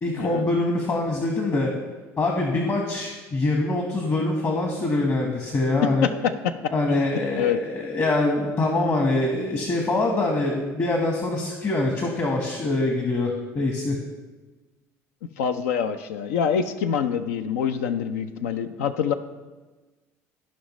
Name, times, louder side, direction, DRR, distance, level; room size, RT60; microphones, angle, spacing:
voice 1, 0.0-1.7 2.2-6.1 6.7-14.0, left 2 dB, 40° left, 1 dB, 1.3 m, -24 dB
voice 2, 5.8-7.0 7.3-7.6 15.4-19.1, left 7 dB, 80° left, 9 dB, 0.4 m, -25 dB
15.0 x 5.2 x 3.1 m, 1.3 s
hypercardioid pair, 65°, 8 cm